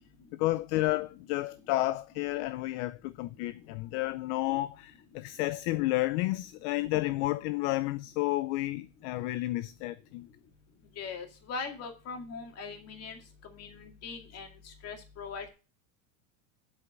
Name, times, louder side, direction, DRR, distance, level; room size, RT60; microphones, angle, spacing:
voice 1, 0.4-10.3, left 18 dB, 55° left, 0.6 m, -31 dB
voice 2, 11.0-15.5, left 5 dB, 35° left, 2.3 m, -41 dB
8.0 x 5.7 x 6.4 m
supercardioid pair, 140°, 42 cm